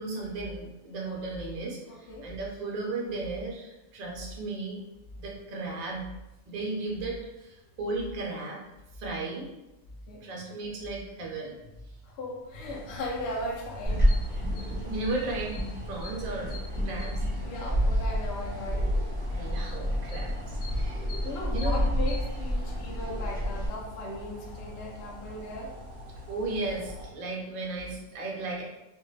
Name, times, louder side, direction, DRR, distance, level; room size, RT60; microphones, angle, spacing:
voice 1, 0.0-4.8 5.2-6.1 6.5-8.6 8.9-9.5 10.2-11.6 14.9-15.6 15.9-17.2 19.3-21.1 21.5-21.8 26.3-28.6, right 2 dB, 60° right, -2 dB, 0.4 m, -35 dB
voice 2, 1.9-2.3 10.1-10.3 12.0-14.5 17.4-18.9 21.2-25.8, left 1 dB, 65° left, -1 dB, 0.6 m, -38 dB
sound 1, 12.4-27.1, left 1 dB, 35° left, 1.0 m, -42 dB
sound 2, 13.9-23.7, equal, 10° left, 1.0 m, -29 dB
2.6 x 2.2 x 3.0 m, 0.97 s
omnidirectional pair, 1.5 m